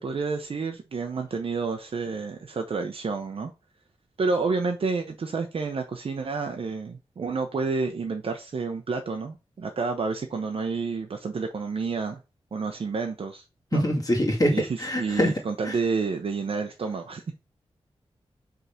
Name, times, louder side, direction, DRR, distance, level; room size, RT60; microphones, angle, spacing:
voice 1, 0.0-3.5 4.2-12.2 12.5-13.4 13.7-13.8 14.5-17.3, right 4 dB, 60° right, 0.8 m, -29 dB
voice 2, 13.7-14.5 14.8-15.3 15.7-15.8, equal, 35° left, 2.1 m, -23 dB
5.6 x 3.8 x 5.8 m
wide cardioid pair, 110°, 11 cm